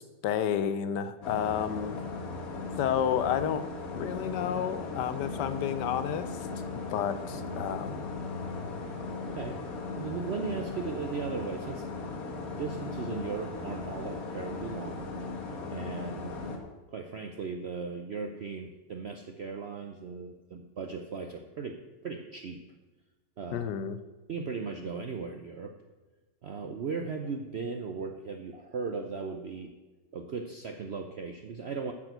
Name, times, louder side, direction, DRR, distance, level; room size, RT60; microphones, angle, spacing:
voice 1, 0.0-2.0 2.8-3.6 3.9-6.3 6.5-8.0 23.5-24.0, left 9 dB, 80° left, 13 dB, 1.3 m, -31 dB
sound 1, 1.2-16.6, left 3 dB, 55° left, 1.6 m, -37 dB
voice 2, 10.0-11.8 12.5-15.1 15.7-16.4 16.9-22.6 23.4-23.8 24.3-25.8 26.4-29.7 30.1-31.9, right 5 dB, 70° right, 6 dB, 0.6 m, -37 dB
8.7 x 6.2 x 7.9 m, 1.2 s
omnidirectional pair, 1.9 m